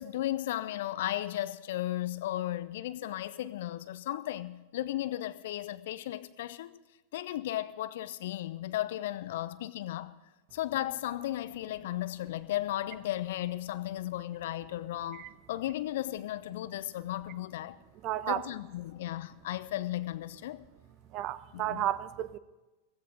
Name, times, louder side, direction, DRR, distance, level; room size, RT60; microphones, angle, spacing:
voice 1, 0.0-6.7 7.1-10.1 10.5-17.8 18.3-20.6 21.5-21.9, left 14 dB, 55° left, 0.8 m, -35 dB
voice 2, 18.0-18.4 21.1-22.4, right 12 dB, 40° right, 1.0 m, -32 dB
16.5 x 16.0 x 5.1 m
figure-of-eight pair, 90°, 0 cm